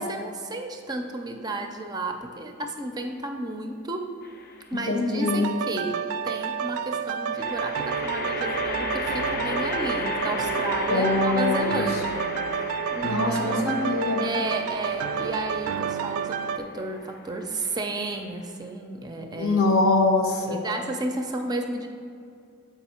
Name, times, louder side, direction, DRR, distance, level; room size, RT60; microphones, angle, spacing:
voice 1, 0.0-4.2 4.7-13.7 14.2-19.8 20.4-21.9, right 2 dB, 20° right, 4 dB, 0.4 m, -33 dB
sound 1, 4.2-4.8 7.3-18.7, left 3 dB, 45° left, 0.5 m, -35 dB
voice 2, 4.9-5.5 10.9-11.8 13.0-14.3 19.3-20.6, left 2 dB, 80° left, 2 dB, 1.0 m, -23 dB
sound 2, 5.2-16.6, right 7 dB, 85° right, 0.3 m, -30 dB
7.1 x 5.0 x 4.3 m, 2.4 s
head